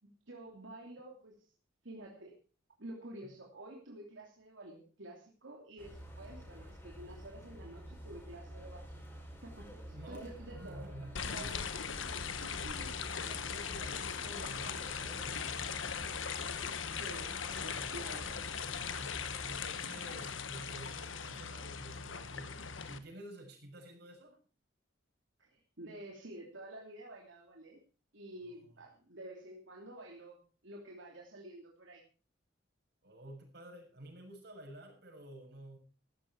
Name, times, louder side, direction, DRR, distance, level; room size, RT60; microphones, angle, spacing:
voice 1, 0.0-1.5 1.8-2.3 2.8-9.0 9.4-10.8 11.3-11.6 12.0-12.1 12.6-13.0 17.0-18.4 18.7-19.1 25.4-27.8 28.1-32.0, right 1 dB, 80° right, -1 dB, 2.9 m, -50 dB
sound 1, 5.8-19.7, equal, 15° left, 5.2 m, -49 dB
voice 2, 9.9-11.7 13.1-15.9 17.6-17.9 18.7-19.2 19.4-24.4 28.4-28.6 33.0-35.8, right 1 dB, 55° right, 2 dB, 6.8 m, -51 dB
sound 2, 11.2-23.0, left 6 dB, 90° left, 1.3 m, -39 dB
15.5 x 13.0 x 4.7 m, 0.37 s
head